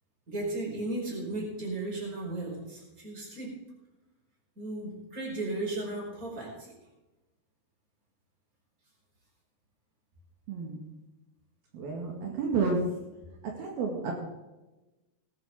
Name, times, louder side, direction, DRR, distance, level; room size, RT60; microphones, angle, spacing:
voice 1, 0.3-3.6 4.5-6.7, right 2 dB, 20° right, -2 dB, 5.0 m, -35 dB
voice 2, 10.5-10.8 11.7-12.9 13.6-14.1, right 4 dB, 70° right, -1 dB, 3.7 m, -30 dB
18.5 x 11.5 x 3.7 m, 1.1 s
omnidirectional pair, 4.6 m